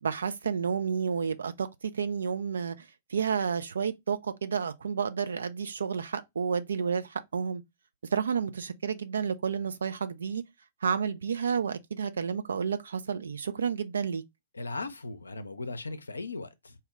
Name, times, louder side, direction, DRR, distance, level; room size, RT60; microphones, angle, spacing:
voice 1, 0.0-2.8 3.1-7.6 8.1-10.4 10.8-14.2, right 6 dB, 75° right, 0.5 m, -30 dB
voice 2, 14.5-16.7, left 3 dB, 85° left, 0.5 m, -37 dB
4.2 x 2.1 x 3.6 m
figure-of-eight pair, 110°, 0 cm